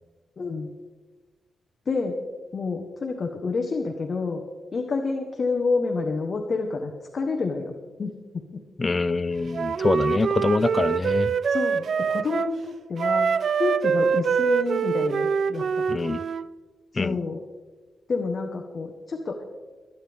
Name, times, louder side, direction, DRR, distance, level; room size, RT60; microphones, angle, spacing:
voice 1, 0.4-0.7 1.9-2.1 2.5-4.4 4.7-7.7 8.0-8.1 10.1-10.2 11.5-13.3 13.6-15.8 16.9-17.4 18.1-19.4, left 4 dB, 40° left, 3 dB, 1.2 m, -28 dB
voice 2, 8.8-11.3 15.9-16.2 16.9-17.2, left 3 dB, 25° left, 17 dB, 0.4 m, -25 dB
Wind instrument woodwind instrument, 9.5-12.5 13.0-16.5, right 6 dB, 60° right, 0.4 m, -24 dB
24.5 x 9.5 x 3.5 m, 1.3 s
wide cardioid pair, 145°, 0 cm